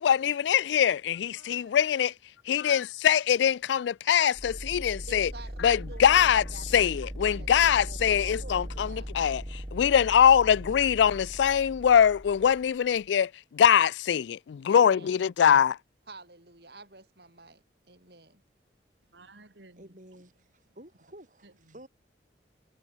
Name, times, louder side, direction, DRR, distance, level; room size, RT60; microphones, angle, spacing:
voice 1, 0.0-2.1 2.5-5.3 5.6-6.4 6.7-15.8, left 8 dB, 80° left, 0.3 m, -23 dB
voice 2, 1.3-1.8 19.1-20.0 21.4-21.8, right 2 dB, 85° right, 3.3 m, -55 dB
sound 1, 4.4-13.1, equal, 25° right, 2.3 m, -39 dB
voice 3, 5.1-9.1 14.7-15.3 16.1-18.4, right 3 dB, 60° right, 6.0 m, -49 dB
voice 4, 19.8-21.9, right 1 dB, 45° right, 7.1 m, -51 dB
head